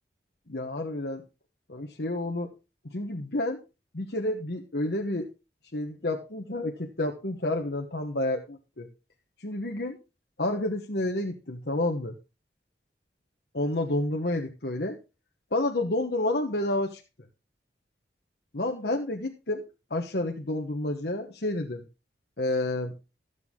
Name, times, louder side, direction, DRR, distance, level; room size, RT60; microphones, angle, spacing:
voice 1, 0.5-1.2 1.7-2.5 2.9-3.6 3.9-5.3 5.7-8.9 9.4-10.0 10.4-12.1 13.5-15.0 15.5-17.0 18.5-19.6 19.9-21.8 22.4-22.9, left 1 dB, 65° left, 2 dB, 1.2 m, -29 dB
14.0 x 8.1 x 3.7 m, 0.30 s
head